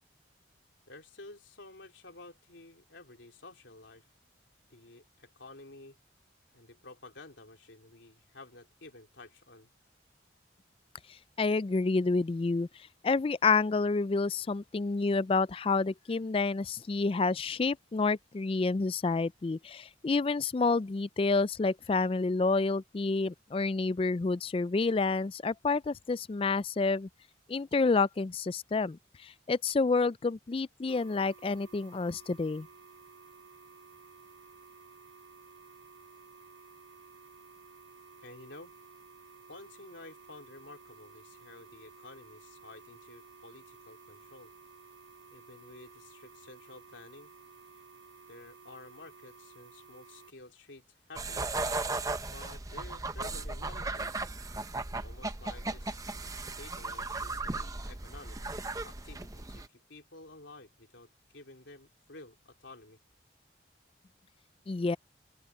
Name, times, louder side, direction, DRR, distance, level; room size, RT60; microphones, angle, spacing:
voice 1, 0.9-4.1 4.7-6.0 6.5-9.7 38.2-38.7 39.5-44.5 45.3-47.3 48.3-51.5 52.3-54.1 55.0-58.4 58.8-63.0, left 2 dB, 80° left, 3.4 m, -52 dB
voice 2, 11.4-12.7 13.0-27.1 27.5-32.7 64.7-65.0, left 3 dB, 30° left, 0.3 m, -29 dB
sound 1, 30.9-50.3, right 4 dB, 90° right, 1.2 m, -55 dB
sound 2, 51.2-59.7, right 3 dB, 20° right, 0.7 m, -36 dB
open air
head